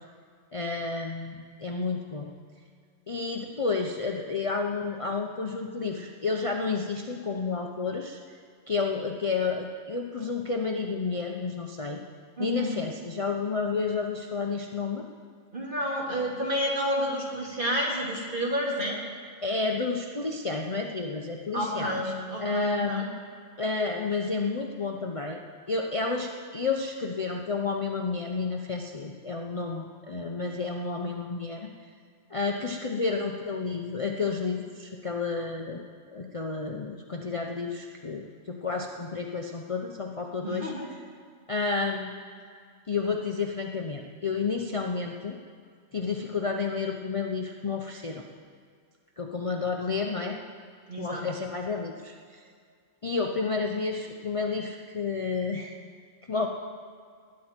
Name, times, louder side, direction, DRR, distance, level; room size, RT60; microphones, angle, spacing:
voice 1, 0.5-2.3 3.1-8.2 8.7-12.0 12.4-15.1 19.4-22.1 22.4-23.1 23.6-25.4 25.7-31.7 32.3-35.8 36.1-40.7 41.5-42.1 42.9-45.4 45.9-48.2 49.2-50.4 51.0-52.4 53.0-55.8 56.3-56.5, left 4 dB, 35° left, 1 dB, 0.7 m, -31 dB
voice 2, 12.4-12.7 15.5-19.0 21.5-23.1 40.4-40.9 50.9-51.2, equal, 40° right, -3 dB, 2.7 m, -30 dB
20.0 x 9.8 x 4.4 m, 2.1 s
omnidirectional pair, 1.3 m